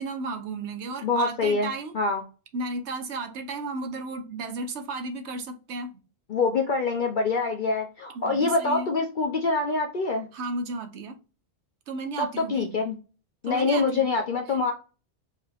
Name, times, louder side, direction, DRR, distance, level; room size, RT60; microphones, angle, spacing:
voice 1, 0.0-1.9 2.5-6.0 8.1-8.9 10.3-11.2 11.9-12.8 13.4-14.1, right 3 dB, 85° right, 1.1 m, -34 dB
voice 2, 1.0-2.2 6.3-10.3 12.2-12.9 13.4-14.7, left 3 dB, 55° left, 0.7 m, -25 dB
4.7 x 2.9 x 2.4 m
omnidirectional pair, 1.1 m